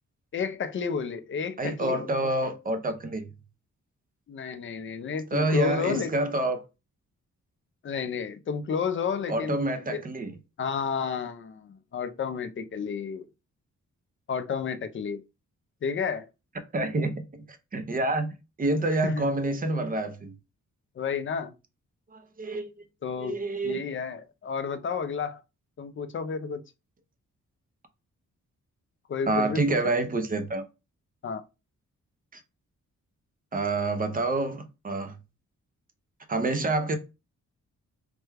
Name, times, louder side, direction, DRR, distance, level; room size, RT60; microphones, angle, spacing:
voice 1, 0.3-2.3 4.3-6.1 7.8-10.0 10.6-13.3 14.3-15.2 15.8-16.3 19.0-19.3 21.0-21.5 23.0-25.4 25.8-26.6 29.1-29.9 31.2-31.4, left 6 dB, 40° left, 0.4 m, -31 dB
voice 2, 1.6-3.3 5.3-6.6 9.3-10.3 16.7-17.4 17.7-18.3 18.6-20.3 22.1-22.7 23.2-23.8 29.3-30.6 32.3-32.4 33.5-35.2 36.3-37.0, right 2 dB, 30° right, 0.5 m, -27 dB
3.3 x 2.2 x 3.3 m
wide cardioid pair, 125°, 30 cm